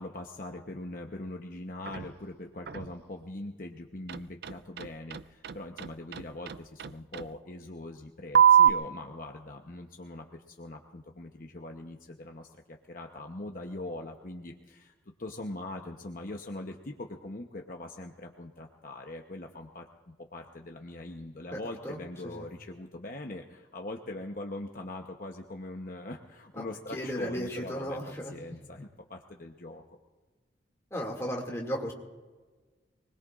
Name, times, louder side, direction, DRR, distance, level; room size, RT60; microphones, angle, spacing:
voice 1, 0.0-14.9 15.2-30.0, left 2 dB, 45° left, 2 dB, 0.9 m, -42 dB
sound 1, 1.9-2.1 2.7-2.9 4.1-7.2 8.3-8.7, right 9 dB, 55° right, 0.4 m, -23 dB
voice 2, 26.9-28.3 30.9-31.9, equal, 15° left, -1 dB, 2.3 m, -34 dB
24.5 x 20.5 x 2.5 m, 1.3 s
head